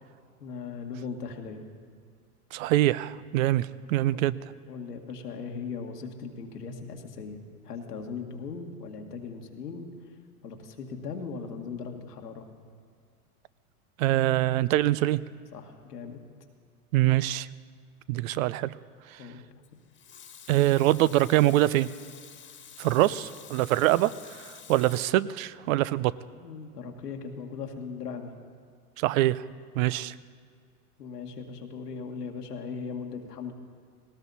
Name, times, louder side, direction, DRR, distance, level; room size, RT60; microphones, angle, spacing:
voice 1, 0.4-1.6 4.1-4.3 4.7-9.9 10.4-12.5 15.5-16.2 19.2-19.4 23.0-23.2 26.4-28.3 31.0-33.5, left 5 dB, 90° left, 2 dB, 1.9 m, -38 dB
voice 2, 2.5-4.3 14.0-15.2 16.9-17.5 18.1-18.8 20.5-21.9 22.8-24.1 24.4-26.1 29.0-29.4 29.7-30.1, right 15 dB, 60° right, 18 dB, 0.6 m, -24 dB
Water tap faucet / Sink (filling or washing) / Liquid, 19.6-25.1, left 8 dB, 25° left, 1.5 m, -49 dB
18.5 x 18.5 x 4.1 m, 2.2 s
hypercardioid pair, 100°, 46 cm